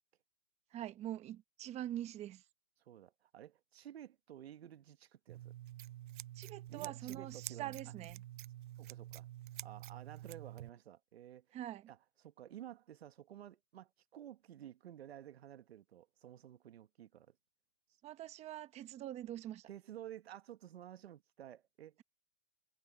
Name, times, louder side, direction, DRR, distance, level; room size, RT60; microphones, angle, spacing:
voice 1, 0.7-2.4 6.3-8.2 11.5-11.9 18.0-19.7, right 12 dB, 20° right, 1.1 m, -44 dB
voice 2, 2.8-5.5 6.7-7.8 8.8-9.3 9.6-11.6 11.9-17.3 19.7-22.0, right 11 dB, 75° right, 1.6 m, -53 dB
Scissors, 5.3-10.7, right 14 dB, 55° right, 0.5 m, -48 dB
hypercardioid pair, 145°, 32 cm